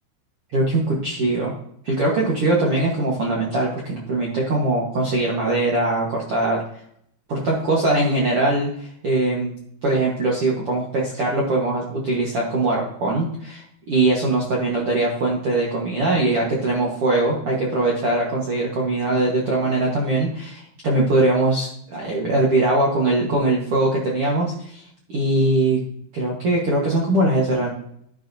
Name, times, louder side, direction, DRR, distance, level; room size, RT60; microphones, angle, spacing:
voice 1, 0.5-1.5 1.8-6.6 7.3-9.5 9.8-24.8 25.1-25.8 26.1-27.7, right 2 dB, 60° right, -3 dB, 1.5 m, -21 dB
11.5 x 6.6 x 2.7 m, 0.68 s
omnidirectional pair, 4.5 m